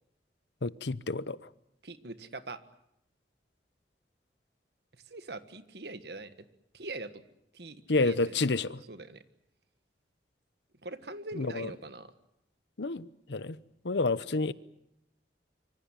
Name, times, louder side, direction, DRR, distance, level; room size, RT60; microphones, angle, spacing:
voice 1, 0.6-1.4 7.9-8.8 11.4-11.7 12.8-13.6 13.8-14.5, left 3 dB, 80° left, 0.9 m, -29 dB
voice 2, 1.8-2.6 5.1-6.3 6.7-7.2 7.5-8.4 8.9-9.2 10.8-12.1, right 2 dB, 65° right, 1.6 m, -42 dB
25.0 x 24.5 x 7.5 m
head